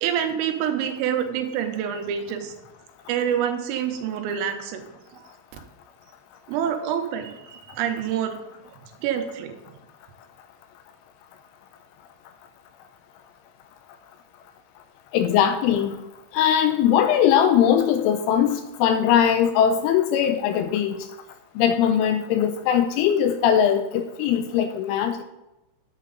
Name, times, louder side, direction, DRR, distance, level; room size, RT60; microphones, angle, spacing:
voice 1, 0.0-2.5 3.1-4.8 5.1-5.2 6.5-8.4 9.0-9.5, right 9 dB, 85° right, 6 dB, 3.5 m, -26 dB
voice 2, 15.1-16.0 16.3-21.0 21.6-25.2, left 9 dB, 85° left, 8 dB, 2.9 m, -20 dB
10.5 x 8.3 x 3.9 m, 0.95 s
omnidirectional pair, 5.9 m